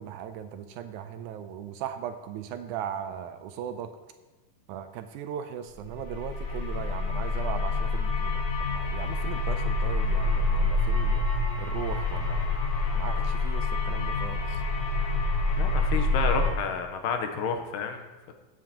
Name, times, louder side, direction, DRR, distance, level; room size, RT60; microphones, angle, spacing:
voice 1, 0.0-3.9 4.7-11.3 11.6-12.5 12.9-14.6, right 9 dB, 80° right, 8 dB, 1.9 m, -38 dB
sound 1, 5.8-16.5, left 2 dB, 55° left, 2.8 m, -27 dB
voice 2, 15.6-18.3, left 6 dB, 90° left, 5 dB, 2.6 m, -30 dB
15.0 x 9.3 x 2.9 m, 1.2 s
omnidirectional pair, 3.7 m